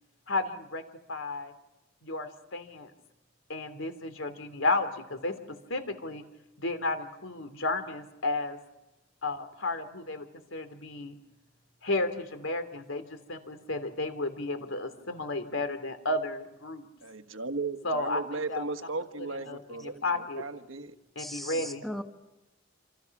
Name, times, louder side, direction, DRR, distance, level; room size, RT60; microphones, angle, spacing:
voice 1, 0.3-0.8 1.1-1.5 2.0-2.9 3.5-6.2 6.6-8.6 9.2-11.2 11.8-16.9 17.8-18.2 18.5-18.6 19.2-20.4 21.1-21.8, left 2 dB, 80° left, 9 dB, 3.1 m, -33 dB
voice 2, 17.0-20.0 20.3-20.9, right 3 dB, 85° right, 7 dB, 1.5 m, -36 dB
voice 3, 21.2-22.0, equal, ahead, 4 dB, 1.6 m, -38 dB
28.0 x 27.0 x 6.1 m, 0.97 s
head